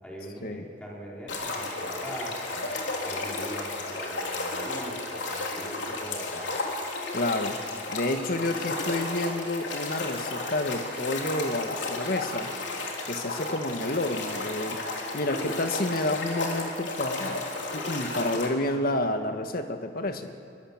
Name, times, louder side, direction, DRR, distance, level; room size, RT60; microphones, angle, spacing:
voice 1, 0.0-2.7 3.0-6.6, right 1 dB, 5° left, -5 dB, 4.9 m, -42 dB
sound 1, 1.3-18.5, left 2 dB, 80° left, 3.4 m, -33 dB
voice 2, 7.1-7.6 7.9-12.5 13.1-14.8 15.1-17.4 17.7-20.3, left 1 dB, 55° left, 6 dB, 1.7 m, -29 dB
23.5 x 22.5 x 7.4 m, 2.3 s
head